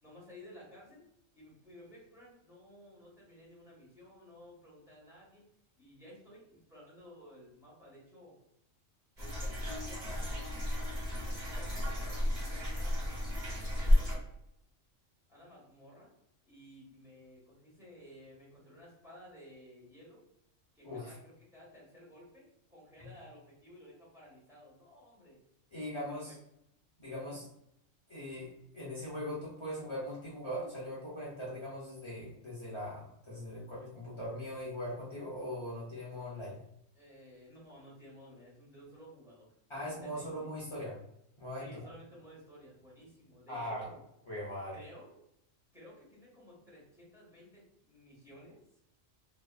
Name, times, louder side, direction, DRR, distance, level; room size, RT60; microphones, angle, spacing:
voice 1, 0.0-1.0 1.3-5.5 5.8-8.4 9.2-14.3 15.3-16.1 16.5-20.2 20.7-25.4 26.1-26.4 27.2-27.4 36.9-40.3 41.6-44.0 44.7-45.2 45.7-48.6, equal, ahead, -7 dB, 1.0 m, -55 dB
sound 1, 9.2-14.2, left 1 dB, 30° right, 0.9 m, -32 dB
voice 2, 25.7-26.4 27.0-27.5 28.1-36.6 39.7-41.0 41.4-41.7 43.5-43.9 44.3-44.8, equal, 50° left, -7 dB, 0.3 m, -40 dB
2.8 x 2.2 x 2.2 m, 0.79 s
omnidirectional pair, 1.4 m